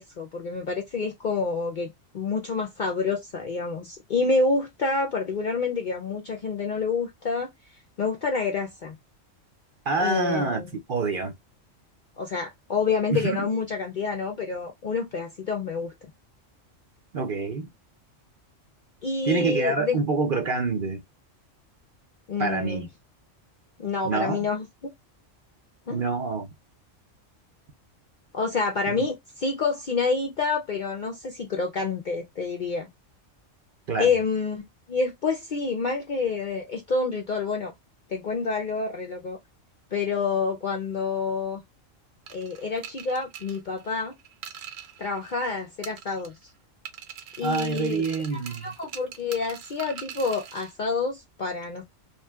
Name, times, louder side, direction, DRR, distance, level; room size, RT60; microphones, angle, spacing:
voice 1, 0.0-7.5 8.0-9.0 10.0-10.8 12.2-15.9 19.0-20.0 22.3-22.8 23.8-24.9 25.9-26.0 28.3-32.9 34.0-34.6 34.9-37.7 38.1-39.4 39.9-41.6 42.3-44.1 45.0-46.3 47.4-48.0 48.3-51.8, left 4 dB, 55° left, 0.5 m, -28 dB
voice 2, 9.9-11.3 13.1-13.5 17.1-17.7 19.2-21.0 22.4-22.9 24.0-24.5 25.9-26.5 28.9-29.1 33.9-34.1 47.4-48.7, right 3 dB, 50° right, 0.7 m, -27 dB
sound 1, 42.3-45.5 45.8-46.5 46.9-50.7, right 9 dB, 80° right, 1.1 m, -42 dB
3.0 x 2.7 x 2.2 m
omnidirectional pair, 1.3 m